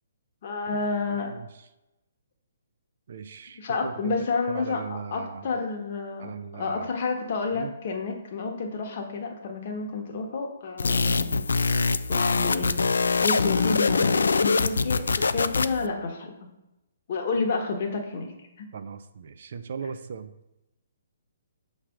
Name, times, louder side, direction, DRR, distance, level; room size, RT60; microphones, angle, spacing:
voice 1, 0.4-1.3 3.6-11.4 12.1-12.7 13.2-16.5 17.1-18.7, left 4 dB, 45° left, 3 dB, 1.2 m, -30 dB
voice 2, 1.1-1.7 3.1-5.5 6.2-7.0 7.5-7.8 18.7-20.3, right 6 dB, 60° right, 10 dB, 0.5 m, -39 dB
sound 1, 10.8-15.9, left 4 dB, 90° left, 0.3 m, -24 dB
6.0 x 3.3 x 5.8 m, 0.93 s
hypercardioid pair, 155°, 0 cm